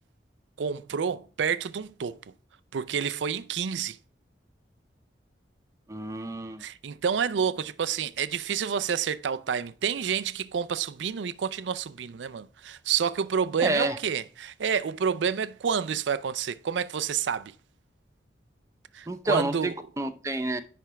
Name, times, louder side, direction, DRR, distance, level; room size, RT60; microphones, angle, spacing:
voice 1, 0.6-2.2 2.7-4.0 6.6-17.5 18.9-19.7, right 7 dB, 90° right, 0.4 m, -29 dB
voice 2, 5.9-6.6 13.6-14.0 19.1-20.6, right 1 dB, 15° right, 0.5 m, -29 dB
10.0 x 3.4 x 6.1 m
head